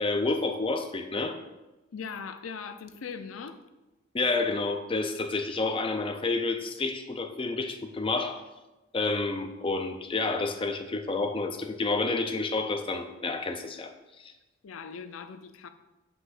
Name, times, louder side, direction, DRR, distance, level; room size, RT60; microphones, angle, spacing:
voice 1, 0.0-1.4 4.1-8.4 8.9-13.9 14.2-14.3, left 3 dB, 25° left, 7 dB, 0.5 m, -29 dB
voice 2, 1.9-3.6 14.6-15.7, left 6 dB, 85° left, 10 dB, 0.5 m, -40 dB
7.9 x 5.9 x 2.5 m, 1.0 s
head